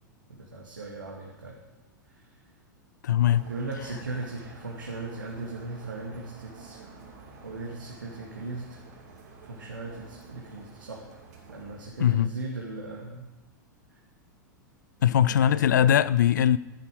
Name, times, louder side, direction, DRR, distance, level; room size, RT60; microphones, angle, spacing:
voice 1, 0.4-1.6 2.2-2.3 3.5-6.9 7.4-8.8 9.4-11.1 11.5-13.3 13.9-14.0 15.0-15.9, right 2 dB, 75° right, 2.0 m, -38 dB
voice 2, 3.0-3.4 12.0-12.3 15.0-16.6, left 10 dB, 65° left, 0.4 m, -21 dB
sound 1, 3.2-11.9, right 4 dB, 60° right, 2.7 m, -49 dB
11.0 x 10.0 x 5.0 m
figure-of-eight pair, 95°, 10 cm